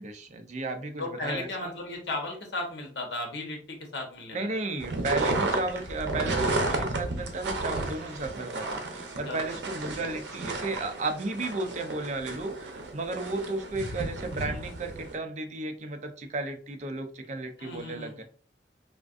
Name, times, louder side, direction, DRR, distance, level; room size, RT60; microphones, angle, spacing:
voice 1, 0.0-1.7 4.3-18.2, right 2 dB, 40° right, 7 dB, 0.5 m, -34 dB
voice 2, 1.0-4.6 9.3-9.6 17.6-18.2, left 2 dB, 75° left, 3 dB, 1.0 m, -36 dB
køupání-snìhu, 4.8-15.1, right 2 dB, 85° right, 0.7 m, -32 dB
3.5 x 2.4 x 2.4 m, 0.41 s
head